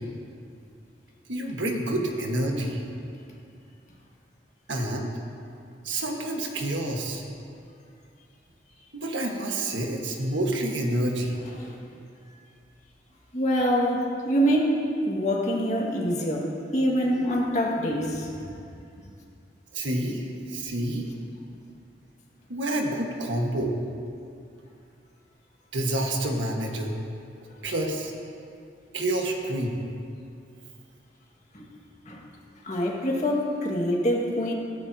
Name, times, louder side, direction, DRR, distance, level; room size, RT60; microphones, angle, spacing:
voice 1, 1.3-2.8 4.7-5.1 5.8-7.2 8.9-11.3 19.7-21.1 22.5-23.7 25.7-26.9 27.6-28.1 28.9-29.8, right 1 dB, 85° right, 1 dB, 1.6 m, -28 dB
voice 2, 13.3-18.3 31.5-31.7 32.1-32.2 32.6-34.5, equal, 40° left, -2 dB, 2.0 m, -25 dB
17.0 x 14.5 x 2.9 m, 2.5 s
head